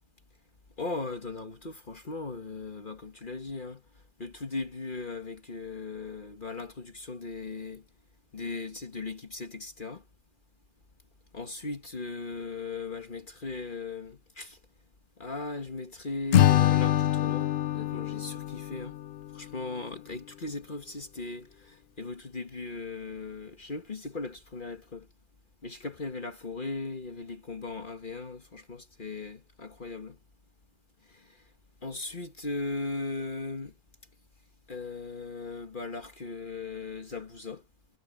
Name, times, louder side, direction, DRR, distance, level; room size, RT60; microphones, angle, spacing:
voice 1, 0.8-3.8 4.2-7.8 8.3-10.0 11.3-14.6 15.2-19.0 19.3-25.1 25.6-30.2 31.1-31.2 31.8-33.7 34.7-37.6, left 3 dB, 35° left, 1.5 m, -38 dB
Acoustic guitar / Strum, 16.3-19.6, left 12 dB, 65° left, 0.6 m, -25 dB
omnidirectional pair, 1.6 m